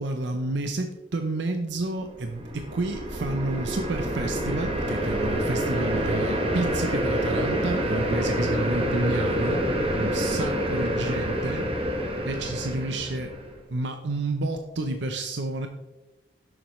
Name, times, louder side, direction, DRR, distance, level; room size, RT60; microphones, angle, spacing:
voice 1, 0.0-9.6 9.9-11.7 12.2-13.3 13.7-15.7, right 2 dB, 70° right, 6 dB, 0.7 m, -30 dB
sound 1, 2.1-13.5, equal, 30° right, 1.2 m, -27 dB
10.0 x 7.3 x 3.1 m, 1.0 s
head